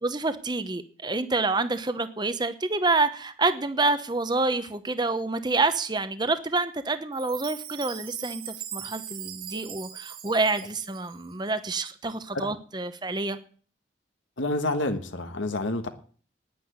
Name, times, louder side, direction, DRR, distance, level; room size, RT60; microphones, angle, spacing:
voice 1, 0.0-13.4, right 3 dB, 20° right, 11 dB, 0.8 m, -27 dB
Chime, 7.1-11.3, right 10 dB, 50° right, 1.3 m, -40 dB
voice 2, 14.4-15.9, left 2 dB, 85° left, 7 dB, 1.5 m, -28 dB
10.0 x 9.5 x 9.3 m, 0.43 s
head